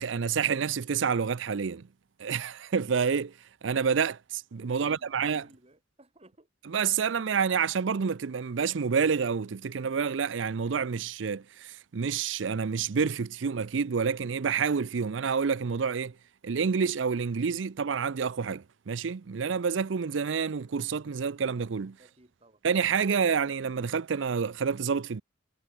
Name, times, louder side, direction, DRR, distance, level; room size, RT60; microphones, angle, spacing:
voice 1, 0.0-1.9 2.2-3.3 3.6-5.4 6.7-16.1 16.4-22.0 22.6-25.2, right 6 dB, 75° right, 0.5 m, -28 dB
voice 2, 4.7-6.5 22.0-22.6, right 1 dB, 35° right, 7.1 m, -57 dB
head